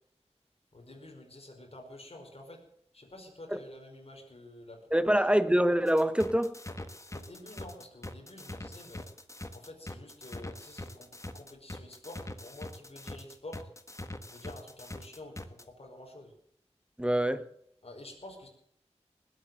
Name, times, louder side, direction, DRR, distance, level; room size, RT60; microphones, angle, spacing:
voice 1, 0.7-2.6 2.9-5.4 7.1-9.1 9.5-11.1 11.3-13.6 14.3-16.3 17.8-18.5, left 1 dB, 60° left, 5.1 m, -49 dB
voice 2, 4.9-6.5 17.0-17.4, equal, 10° right, 1.1 m, -25 dB
sound 1, 5.9-15.6, left 1 dB, 25° left, 1.5 m, -43 dB
20.0 x 8.6 x 7.8 m
wide cardioid pair, 70°, 12 cm